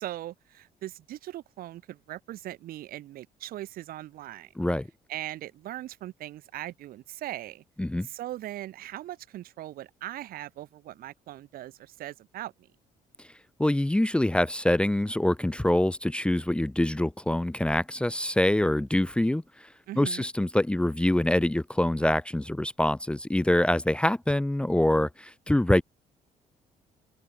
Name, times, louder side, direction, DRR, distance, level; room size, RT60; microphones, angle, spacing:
voice 1, 0.0-4.5 5.1-7.6 8.0-12.5 19.9-20.3, right 14 dB, 80° right, 6.4 m, -39 dB
voice 2, 4.6-4.9 7.8-8.1 13.6-19.7 20.0-25.8, left 1 dB, 5° left, 1.0 m, -25 dB
open air
cardioid pair, 100°, 15 cm